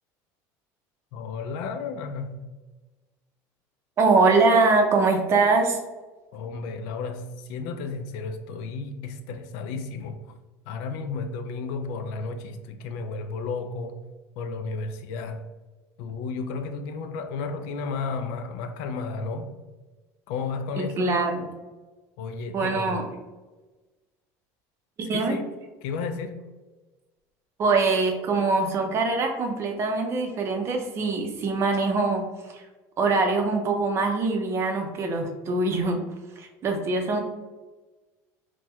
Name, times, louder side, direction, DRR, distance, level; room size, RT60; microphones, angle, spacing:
voice 1, 1.1-2.4 6.3-10.2 10.7-14.0 14.4-15.4 16.0-19.5 20.3-21.1 22.2-23.0 25.0-25.5 25.8-26.4, left 4 dB, 75° left, 0.4 m, -33 dB
voice 2, 4.0-5.8 20.8-21.5 22.5-23.0 25.1-25.4 27.6-32.6 33.0-36.0 36.4-37.2, right 3 dB, 35° right, 0.5 m, -23 dB
4.3 x 2.1 x 2.3 m
cardioid pair, 135°, 8 cm